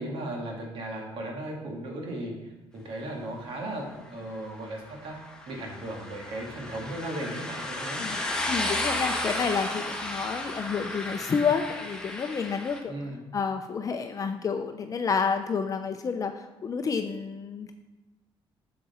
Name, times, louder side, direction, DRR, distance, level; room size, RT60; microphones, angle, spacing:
voice 1, 0.0-5.2 5.5-8.0 12.9-13.3, right 1 dB, 65° right, 0 dB, 1.9 m, -36 dB
sound 1, 4.6-12.8, left 1 dB, 10° left, 1.1 m, -33 dB
voice 2, 8.5-13.0 13.3-17.7, left 5 dB, 35° left, 6 dB, 0.5 m, -29 dB
7.1 x 6.7 x 4.3 m, 1.0 s
cardioid pair, 125°, 10 cm